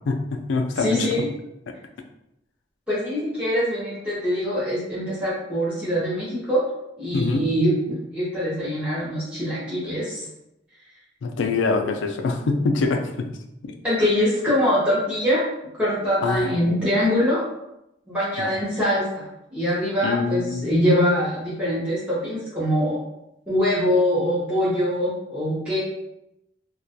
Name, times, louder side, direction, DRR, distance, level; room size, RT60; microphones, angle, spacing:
voice 1, 0.1-1.1 1.7-1.8 7.1-7.5 11.2-13.3 13.6-13.7 16.2-16.8 18.4-18.6 20.0-20.7, left 3 dB, 75° left, 5 dB, 0.3 m, -24 dB
voice 2, 0.8-1.3 2.9-6.6 7.0-10.3 13.8-15.4 15.8-17.5 18.1-23.0 23.5-25.8, equal, 5° right, -11 dB, 0.7 m, -23 dB
2.3 x 2.2 x 2.6 m, 0.84 s
head